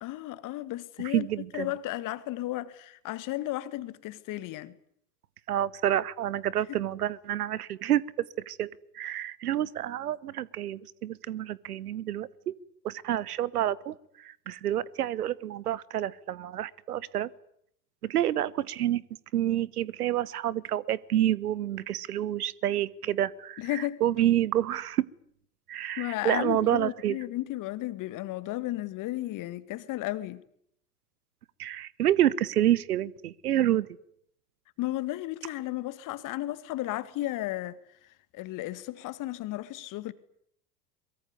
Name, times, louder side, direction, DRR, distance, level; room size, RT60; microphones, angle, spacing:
voice 1, 0.0-1.3 1.5-4.8 6.7-6.8 23.6-24.0 26.0-30.4 34.8-37.8 38.3-40.1, left 16 dB, 40° left, 2.0 m, -34 dB
voice 2, 1.0-1.7 5.5-8.0 8.5-12.5 12.8-17.3 18.0-19.0 19.3-25.0 25.7-27.2 31.6-33.9, right 12 dB, 70° right, 1.2 m, -28 dB
23.5 x 23.0 x 9.6 m
figure-of-eight pair, 85°, 47 cm